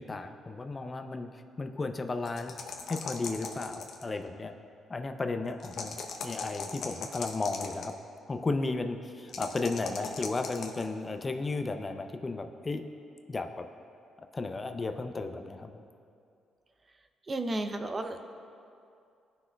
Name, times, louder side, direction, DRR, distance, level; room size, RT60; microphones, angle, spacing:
voice 1, 0.0-2.6 2.9-4.5 4.9-6.0 6.2-7.9 8.3-12.8 13.3-13.7 14.3-15.8, left 3 dB, 25° left, 7 dB, 0.5 m, -34 dB
sound 1, 2.3-4.2 5.6-7.9 9.3-10.9, left 5 dB, 65° left, 0.8 m, -39 dB
voice 2, 17.3-18.2, right 2 dB, 30° right, 7 dB, 0.5 m, -32 dB
17.5 x 6.0 x 2.3 m, 2.5 s
cardioid pair, 90°, 0 cm